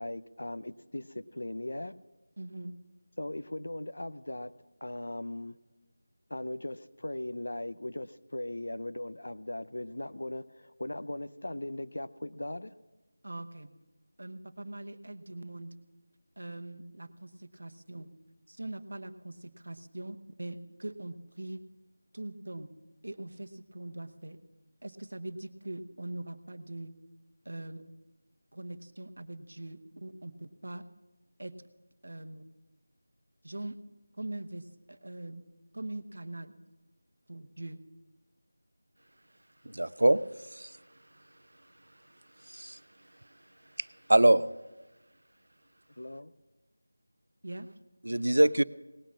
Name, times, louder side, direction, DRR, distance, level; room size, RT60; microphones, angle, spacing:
voice 1, 0.0-1.9 3.2-4.5 4.8-5.6 6.3-12.7 46.0-46.3, left 1 dB, 55° left, 14 dB, 0.6 m, -38 dB
voice 2, 2.4-2.8 13.2-13.7 14.2-15.7 16.4-18.1 18.5-21.6 22.1-22.7 23.0-24.4 24.8-26.9 27.4-27.8 28.5-30.9 31.4-31.5 32.0-32.4 33.4-33.8 34.2-35.5 35.7-36.6 37.3-37.8 47.4-47.7, right 1 dB, 55° right, 9 dB, 0.9 m, -42 dB
voice 3, 39.7-40.2 40.6-40.7 42.5-42.8 44.1-44.5 48.1-48.6, right 1 dB, 85° right, 17 dB, 0.5 m, -22 dB
18.5 x 6.2 x 7.4 m, 1.1 s
figure-of-eight pair, 180°, 0 cm